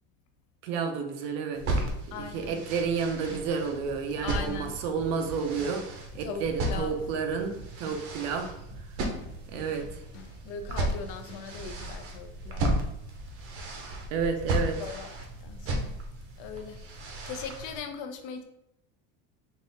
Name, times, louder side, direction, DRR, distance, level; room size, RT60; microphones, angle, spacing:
voice 1, 0.6-1.6 2.1-5.8 6.1-8.5 9.5-9.8 14.1-14.8, right 5 dB, 85° right, 5 dB, 0.8 m, -30 dB
sound 1, 1.5-17.8, right 1 dB, 40° right, 0.8 m, -35 dB
voice 2, 2.1-2.6 4.2-4.7 6.2-7.0 10.4-12.7 14.8-15.1 15.4-15.9 16.4-16.8 17.3-18.4, left 5 dB, 55° left, 6 dB, 0.7 m, -39 dB
sound 2, 3.0-5.9 6.1-10.4 10.7-12.0, left 1 dB, 85° left, 0.9 m, -48 dB
3.9 x 2.5 x 3.9 m, 0.79 s
cardioid pair, 160°, 37 cm